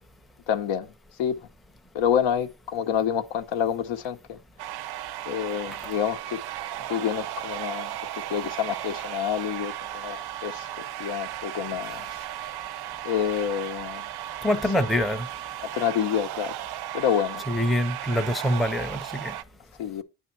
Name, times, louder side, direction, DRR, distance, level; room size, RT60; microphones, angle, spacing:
voice 1, 0.5-0.9 1.2-1.4 1.9-4.4 5.3-6.4 6.9-10.7 11.0-12.1 13.0-14.1 15.6-16.5 16.9-17.4 19.8-20.0, left 9 dB, 80° left, 0.8 m, -28 dB
sound 1, 4.6-19.4, right 12 dB, 60° right, 0.5 m, -35 dB
voice 2, 14.4-15.3 17.5-19.3, equal, ahead, 0.5 m, -25 dB
9.2 x 3.6 x 4.3 m
cardioid pair, 90°, 45 cm